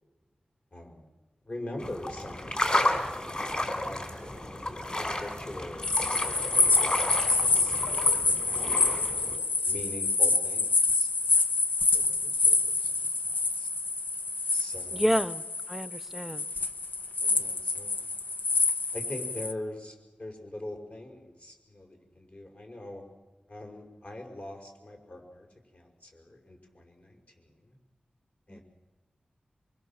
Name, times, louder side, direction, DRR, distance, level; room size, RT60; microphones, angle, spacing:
voice 1, 0.7-1.1 1.4-4.0 4.5-8.9 9.6-11.4 11.9-13.7 14.5-15.3 17.2-18.0 18.9-23.0 23.5-25.5 25.7-27.8 28.5-28.6, left 1 dB, 55° left, 2 dB, 5.6 m, -43 dB
sound 1, 1.8-9.4, left 1 dB, 35° left, 4.4 m, -32 dB
sound 2, 5.8-19.5, left 3 dB, 85° left, 1.3 m, -27 dB
voice 2, 14.9-15.4 15.7-16.4 28.5-28.6, equal, 5° right, 16 dB, 0.8 m, -29 dB
25.0 x 24.0 x 7.4 m, 1.2 s
wide cardioid pair, 65°, 3 cm